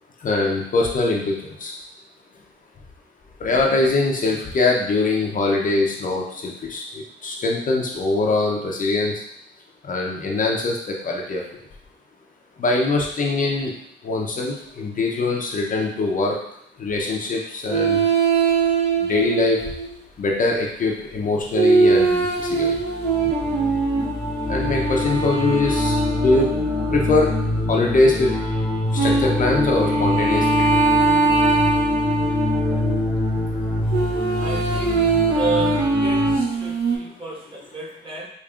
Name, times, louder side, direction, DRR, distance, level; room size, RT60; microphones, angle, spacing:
voice 1, 0.2-1.3 1.6-1.7 3.4-6.8 7.2-9.1 9.9-10.8 11.0-11.4 12.6-13.7 14.0-16.4 16.8-18.1 19.1-19.6 20.2-22.7 24.5-26.5 26.9-27.3 27.7-28.3 28.9-30.7, left 3 dB, 40° left, -1 dB, 0.6 m, -22 dB
sound 1, 17.7-19.9 21.5-27.6 29.0-33.0 33.9-37.0, right 3 dB, 55° right, 1.0 m, -21 dB
sound 2, 22.3-36.4, left 1 dB, 5° left, 0.8 m, -26 dB
voice 2, 34.3-38.3, right 3 dB, 25° right, -4 dB, 1.3 m, -31 dB
5.0 x 2.5 x 2.4 m, 0.73 s
cardioid pair, 90°, 20 cm